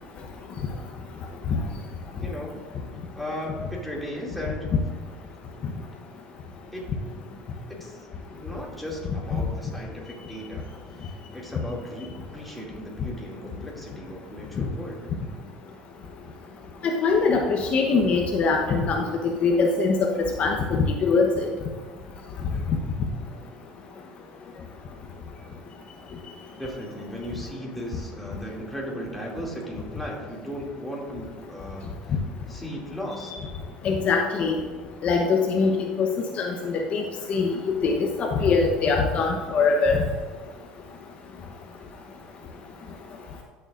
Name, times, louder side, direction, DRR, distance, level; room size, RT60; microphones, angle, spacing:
voice 1, 2.2-2.7 3.1-4.7 6.7-7.1 7.7-8.1 8.3-15.0 26.5-32.2 32.5-33.3, equal, ahead, -3 dB, 2.6 m, -36 dB
voice 2, 16.8-21.5 33.8-34.6 35.0-36.1 36.4-37.0 37.3-37.6 37.8-40.0, left 4 dB, 45° left, 2 dB, 1.0 m, -22 dB
14.5 x 6.9 x 2.6 m, 1.5 s
supercardioid pair, 105°, 3 cm